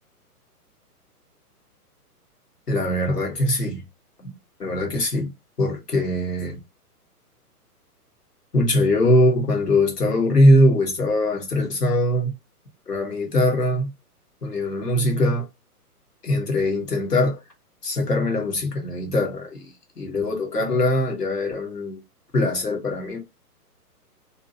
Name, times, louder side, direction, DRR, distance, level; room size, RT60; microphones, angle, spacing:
voice 1, 2.7-3.8 4.2-4.3 4.6-5.3 5.6-6.6 8.5-12.3 12.9-13.9 14.4-15.5 16.2-17.4 17.8-22.0 22.3-23.2, left 1 dB, 80° left, 1.4 m, -21 dB
2.8 x 2.7 x 2.6 m
figure-of-eight pair, 120°, 47 cm